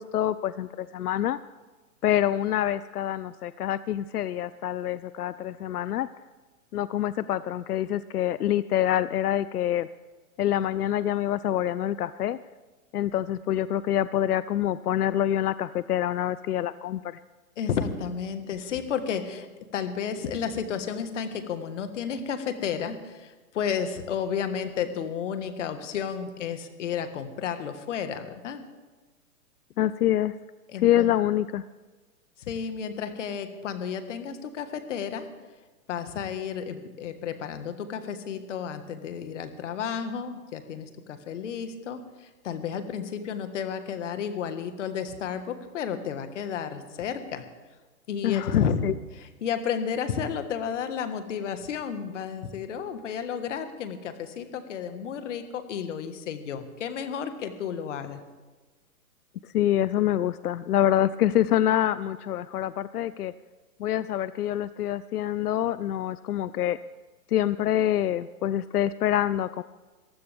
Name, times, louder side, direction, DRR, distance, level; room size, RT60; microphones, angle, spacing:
voice 1, 0.0-1.4 2.0-6.1 6.7-9.9 10.4-12.4 12.9-17.2 29.8-30.4 30.8-31.6 48.2-48.9 59.4-63.3 63.8-66.8 67.3-69.6, left 12 dB, 85° left, 16 dB, 0.6 m, -26 dB
voice 2, 17.6-19.5 19.7-28.6 30.7-31.1 32.4-35.3 35.9-47.4 48.1-48.8 49.1-58.2, left 7 dB, 55° left, 9 dB, 1.7 m, -32 dB
22.5 x 15.0 x 3.5 m, 1.3 s
hypercardioid pair, 155°, 44 cm